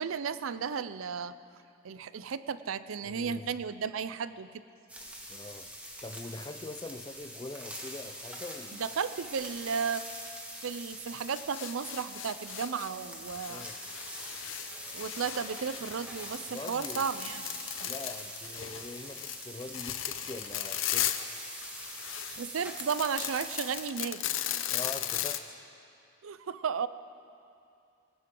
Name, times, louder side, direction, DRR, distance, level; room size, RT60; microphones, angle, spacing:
voice 1, 0.0-1.3 1.8-4.6 8.7-10.3 10.6-13.7 14.9-17.9 22.3-24.2 26.2-26.9, right 6 dB, 85° right, 0.5 m, -34 dB
voice 2, 3.0-3.5 5.3-5.7 6.0-8.8 13.5-13.8 16.5-17.1 17.8-21.2 24.7-25.6, left 2 dB, 20° left, 0.4 m, -43 dB
sound 1, 4.9-23.9, equal, 5° right, 1.6 m, -44 dB
sound 2, 11.3-12.9 13.2-21.3 21.6-25.4, left 12 dB, 75° left, 0.7 m, -37 dB
19.5 x 16.5 x 3.8 m
head